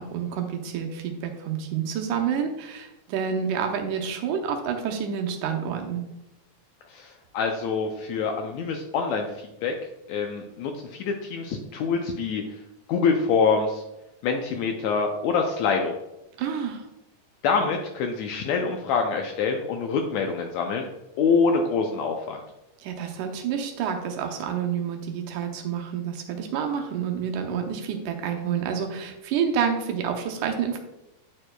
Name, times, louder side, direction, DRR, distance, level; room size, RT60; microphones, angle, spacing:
voice 1, 0.0-6.0 16.4-16.9 22.8-30.8, right 7 dB, 80° right, 4 dB, 2.2 m, -28 dB
voice 2, 6.9-9.7 10.1-12.6 12.9-13.8 14.2-16.0 17.4-20.9 21.2-22.4, left 5 dB, 80° left, 4 dB, 1.6 m, -25 dB
9.4 x 4.5 x 2.2 m, 0.91 s
omnidirectional pair, 3.6 m